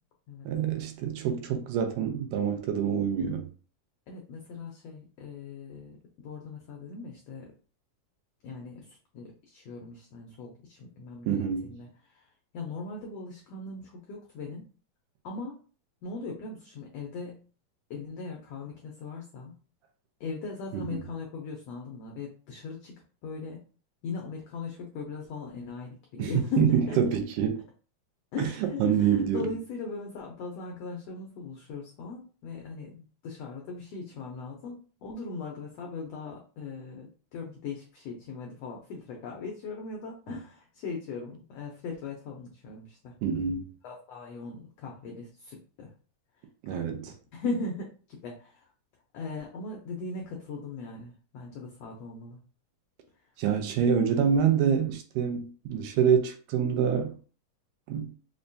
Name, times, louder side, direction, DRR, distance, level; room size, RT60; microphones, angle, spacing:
voice 1, 0.5-3.5 11.3-11.8 20.7-21.0 26.2-27.6 28.4-28.5 28.8-29.5 43.2-43.7 46.6-47.1 53.4-57.1 57.9-58.1, right 7 dB, 80° right, 2.1 m, -26 dB
voice 2, 4.1-6.0 6.2-7.5 8.4-12.3 12.5-14.7 15.2-15.6 16.0-17.4 17.9-19.5 20.2-23.6 24.0-27.2 28.3-43.1 43.8-45.9 46.7-46.9 47.3-48.7 49.1-52.4, left 4 dB, 90° left, 1.4 m, -39 dB
5.3 x 2.2 x 2.6 m
omnidirectional pair, 3.7 m